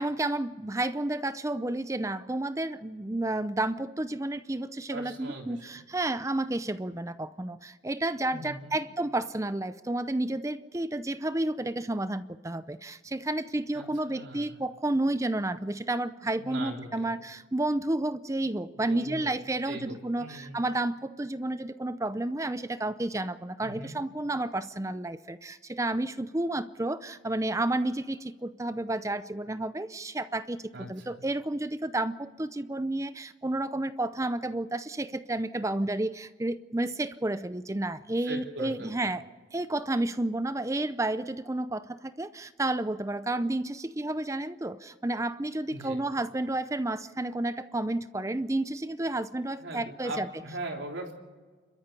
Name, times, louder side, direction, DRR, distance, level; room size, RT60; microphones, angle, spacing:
voice 1, 0.0-39.2 39.5-50.3, right 2 dB, 15° right, 13 dB, 0.5 m, -31 dB
voice 2, 4.9-5.7 8.2-8.8 13.7-14.6 16.4-17.1 18.7-19.3 19.7-20.6 23.6-24.0 30.7-31.3 38.2-39.0 45.7-46.0 49.6-51.1, right 1 dB, 75° right, 1 dB, 3.8 m, -40 dB
29.5 x 13.5 x 7.0 m, 1.4 s
head